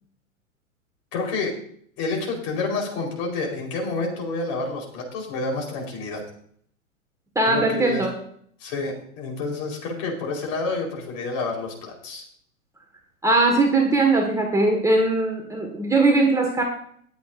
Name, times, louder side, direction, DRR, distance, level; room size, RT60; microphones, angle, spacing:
voice 1, 1.1-1.6 2.0-6.2 7.5-8.0 8.6-12.2, left 3 dB, 40° left, 1 dB, 4.2 m, -29 dB
voice 2, 7.4-8.1 13.2-16.6, right 2 dB, 10° right, 0 dB, 1.8 m, -20 dB
20.0 x 8.5 x 2.6 m, 0.63 s
figure-of-eight pair, 105°, 41 cm